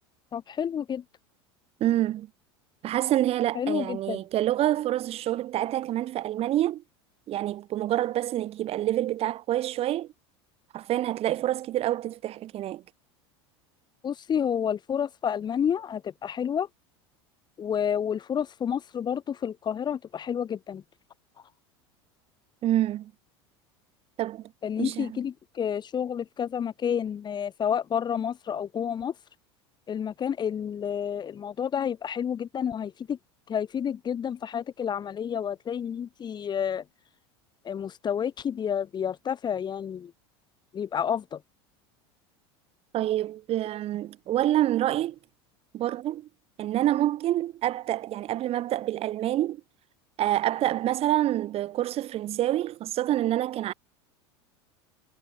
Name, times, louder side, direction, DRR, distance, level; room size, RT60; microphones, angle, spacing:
voice 1, 0.3-1.0 3.5-4.2 14.0-16.7 17.6-20.8 24.6-29.1 29.9-33.2 33.5-36.8 37.6-40.1 40.7-41.4, left 8 dB, 30° left, 2.1 m, -30 dB
voice 2, 1.8-2.3 2.8-6.8 7.3-10.1 10.7-12.8 22.6-23.1 24.2-24.5 24.8-25.2 42.9-45.2 45.7-46.3 46.6-49.6 50.2-53.7, right 13 dB, 45° right, 2.2 m, -27 dB
hypercardioid pair, 100°, 14 cm